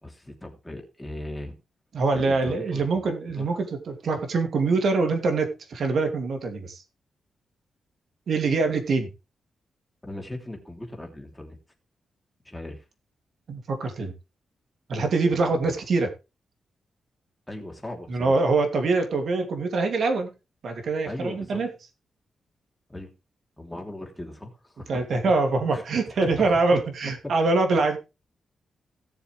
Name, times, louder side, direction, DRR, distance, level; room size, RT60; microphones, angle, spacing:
voice 1, 0.0-1.6 2.1-3.5 10.0-11.6 12.4-12.8 15.6-15.7 17.5-18.4 21.0-21.6 22.9-23.1 23.6-25.0 25.7-25.8 26.2-26.6 27.2-27.3, left 1 dB, 5° left, 2 dB, 3.0 m, -38 dB
voice 2, 1.9-6.8 8.3-9.1 13.5-14.1 14.9-16.1 18.1-20.3 20.6-21.7 24.9-28.0, right 3 dB, 60° right, 5 dB, 2.7 m, -24 dB
17.0 x 7.1 x 3.4 m, 0.27 s
wide cardioid pair, 130°, 0 cm